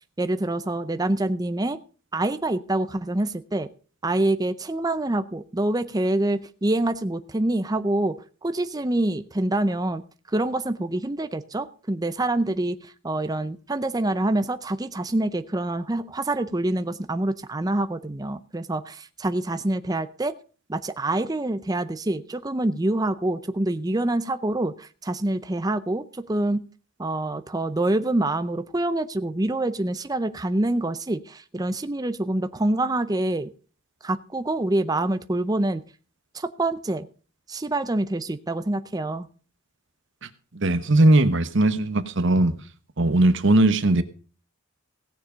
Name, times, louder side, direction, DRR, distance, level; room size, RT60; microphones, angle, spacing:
voice 1, 0.2-1.8 2.1-3.7 4.0-10.0 10.3-20.3 20.7-26.6 27.0-33.5 34.0-35.8 36.3-37.1 37.5-39.3, right 1 dB, 20° right, 11 dB, 0.6 m, -26 dB
voice 2, 40.5-42.5 43.0-44.0, right 2 dB, 55° right, 11 dB, 1.1 m, -19 dB
17.0 x 7.1 x 5.0 m, 0.39 s
head